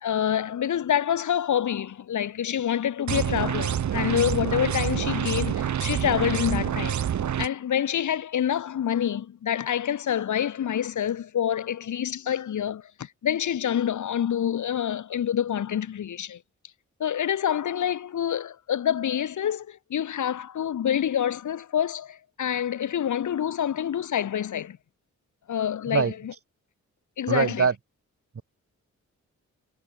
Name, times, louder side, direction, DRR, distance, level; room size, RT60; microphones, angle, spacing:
voice 1, 0.0-7.0 7.4-16.4 17.0-24.8 25.5-26.3 27.2-27.7, left 9 dB, 85° left, 2.1 m, -27 dB
sound 1, 3.1-7.5, right 9 dB, 75° right, 1.5 m, -27 dB
voice 2, 27.3-27.7 28.4-28.5, right 5 dB, 50° right, 7.5 m, -23 dB
wide cardioid pair, 110°, 29 cm